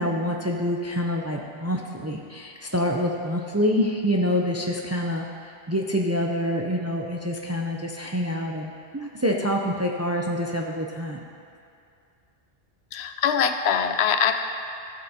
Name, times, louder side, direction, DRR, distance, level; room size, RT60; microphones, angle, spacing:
voice 1, 0.0-11.2, equal, 25° right, 0 dB, 0.3 m, -26 dB
voice 2, 12.9-14.4, left 7 dB, 90° left, 8 dB, 0.9 m, -23 dB
14.0 x 6.7 x 2.8 m, 2.4 s
omnidirectional pair, 1.1 m